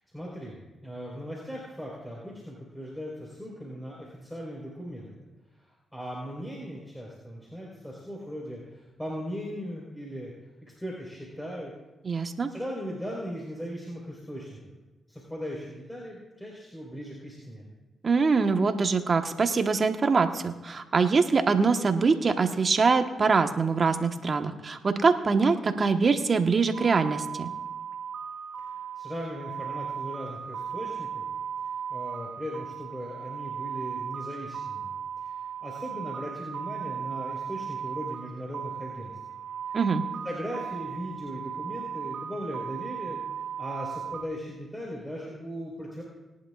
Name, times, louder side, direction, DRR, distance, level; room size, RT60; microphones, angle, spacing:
voice 1, 0.1-5.3 5.9-10.3 10.6-11.7 12.5-14.6 15.1-17.7 28.6-28.7 29.0-31.2 31.9-34.9 35.2-35.3 35.6-39.1 39.7-39.8 40.2-43.2 43.6-46.0, equal, 5° left, -4 dB, 4.4 m, -38 dB
voice 2, 12.0-12.5 18.0-27.5 39.7-40.0, right 4 dB, 50° right, 6 dB, 1.2 m, -24 dB
sound 1, 26.7-44.2, right 7 dB, 85° right, 1.2 m, -36 dB
21.0 x 11.0 x 2.5 m, 1.1 s
supercardioid pair, 50°, 0 cm